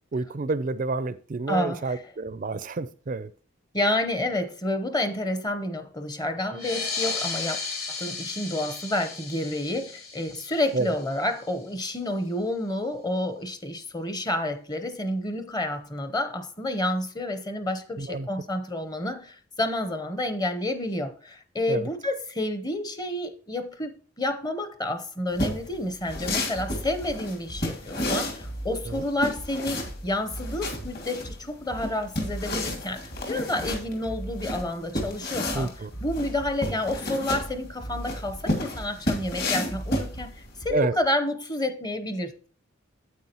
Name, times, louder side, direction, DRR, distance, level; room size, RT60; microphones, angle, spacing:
voice 1, 0.1-3.3 10.7-10.9 18.0-18.3 21.7-21.9 28.7-29.0 35.5-35.9 40.7-40.9, right 3 dB, 40° right, 0.4 m, -29 dB
voice 2, 1.5-2.0 3.7-7.6 7.9-35.7 36.0-42.5, left 1 dB, 20° left, 0.8 m, -29 dB
sound 1, 6.5-11.6, left 4 dB, 85° left, 4.9 m, -34 dB
sound 2, 25.3-40.6, left 1 dB, 45° left, 2.4 m, -32 dB
Bass drum, 26.1-41.1, right 1 dB, 65° left, 2.8 m, -40 dB
9.4 x 8.3 x 2.9 m
head